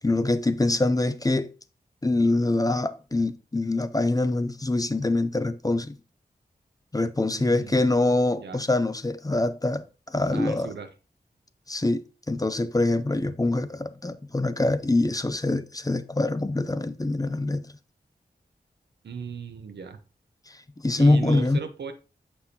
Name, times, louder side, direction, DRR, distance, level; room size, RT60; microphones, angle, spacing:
voice 1, 0.0-1.5 2.0-6.0 6.9-10.7 11.7-17.7 20.8-21.6, left 2 dB, 20° left, 0.5 m, -24 dB
voice 2, 7.3-7.9 8.4-8.6 10.3-10.9 19.0-20.0 20.9-21.9, right 5 dB, 90° right, 0.7 m, -37 dB
6.6 x 5.4 x 2.8 m
cardioid pair, 40°, 17 cm